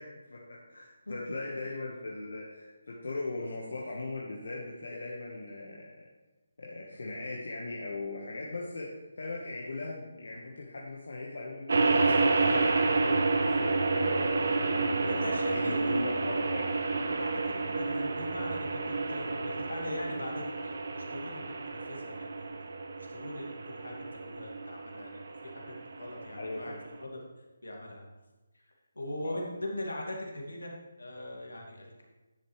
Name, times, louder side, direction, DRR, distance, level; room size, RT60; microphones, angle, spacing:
voice 1, 0.0-6.1 6.6-8.9 9.2-11.7 12.0-15.2 15.5-16.8 26.4-26.8 29.2-29.5, left 2 dB, 65° left, -3 dB, 1.3 m, -39 dB
sound 1, 11.7-27.0, right 3 dB, 60° right, 0.8 m, -30 dB
voice 2, 15.0-16.0 17.0-21.5 21.9-22.5 23.0-26.7 27.0-27.2 27.6-28.1 29.0-32.0, left 1 dB, 80° left, -1 dB, 2.2 m, -40 dB
10.0 x 7.2 x 3.3 m, 1.1 s
figure-of-eight pair, 150°, 0 cm